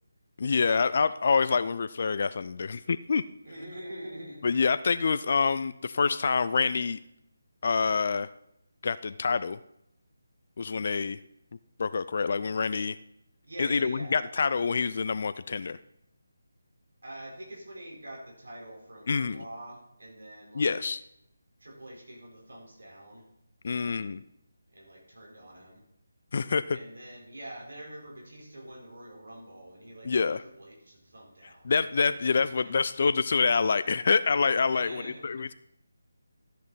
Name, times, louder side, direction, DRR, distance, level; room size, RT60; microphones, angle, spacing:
voice 1, 0.4-3.2 4.4-7.0 7.6-8.3 8.8-9.6 10.6-11.2 11.8-13.0 13.6-15.8 19.1-19.4 20.5-21.0 23.6-24.2 26.3-26.8 30.1-30.4 31.7-35.5, left 5 dB, 45° left, 14 dB, 0.4 m, -26 dB
voice 2, 3.4-4.5 13.4-14.3 17.0-20.9 21.6-23.2 23.6-24.1 24.7-25.8 26.7-32.1 32.4-32.7 34.7-35.4, right 1 dB, 65° right, -2 dB, 4.5 m, -45 dB
13.5 x 8.1 x 4.1 m, 0.78 s
figure-of-eight pair, 155°, 0 cm